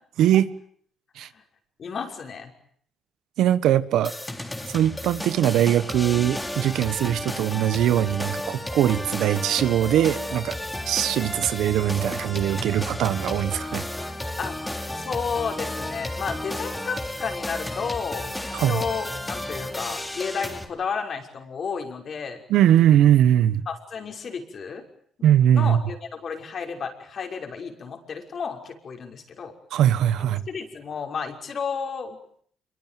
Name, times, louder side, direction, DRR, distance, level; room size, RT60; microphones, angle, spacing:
voice 1, 0.2-0.5 1.2-1.3 3.4-4.1 4.7-10.6 10.8-13.8 18.5-18.8 22.5-23.6 25.2-25.8 29.7-30.4, right 11 dB, 85° right, 1.4 m, -21 dB
voice 2, 1.8-2.5 14.4-14.6 14.9-22.4 23.7-24.9 25.5-29.5 30.5-32.2, left 6 dB, 55° left, 6.0 m, -32 dB
sound 1, 4.0-20.6, left 1 dB, 10° left, 3.4 m, -33 dB
27.5 x 23.0 x 9.3 m
cardioid pair, 90°, 0 cm